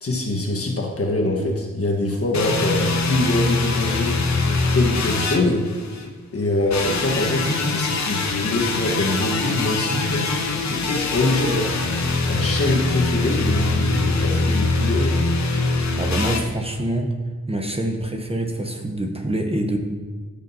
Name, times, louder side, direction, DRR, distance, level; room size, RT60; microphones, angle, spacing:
voice 1, 0.0-4.4 4.7-5.7 6.3-10.3 10.7-11.8 12.3-15.2, left 2 dB, 55° left, 1 dB, 1.5 m, -24 dB
sound 1, 2.3-6.1 6.7-16.4, left 3 dB, 70° left, 0.9 m, -23 dB
voice 2, 16.0-17.1 17.5-19.8, right 1 dB, 20° right, 3 dB, 0.9 m, -25 dB
15.0 x 5.1 x 2.8 m, 1.4 s
cardioid pair, 60°, 29 cm